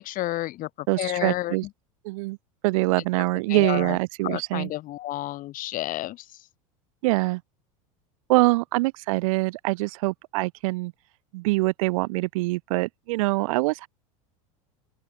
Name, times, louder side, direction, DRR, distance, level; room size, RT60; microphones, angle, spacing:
voice 1, 0.0-1.6 3.2-4.0 4.2-6.4, left 16 dB, 50° left, 6.8 m, -31 dB
voice 2, 0.9-1.6 2.0-2.4 2.6-4.7 7.0-7.4 8.3-10.9 11.3-13.9, right 22 dB, 70° right, 3.5 m, -24 dB
open air
hypercardioid pair, 100°, 18 cm